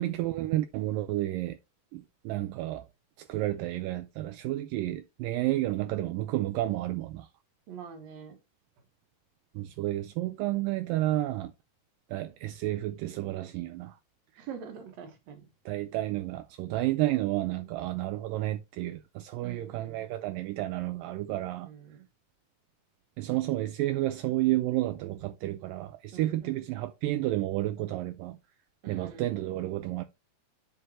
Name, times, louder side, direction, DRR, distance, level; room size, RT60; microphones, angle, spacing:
voice 1, 0.0-1.6 1.9-2.9 3.2-7.3 9.5-11.5 12.1-14.0 14.4-14.5 15.7-21.7 23.2-28.4 28.9-30.0, right 16 dB, 85° right, 2.0 m, -31 dB
voice 2, 7.7-8.4 14.4-15.5 17.4-17.7 19.4-20.0 21.6-22.1 26.1-26.6 28.8-29.3, right 7 dB, 60° right, 2.1 m, -45 dB
9.1 x 5.0 x 3.0 m
omnidirectional pair, 4.5 m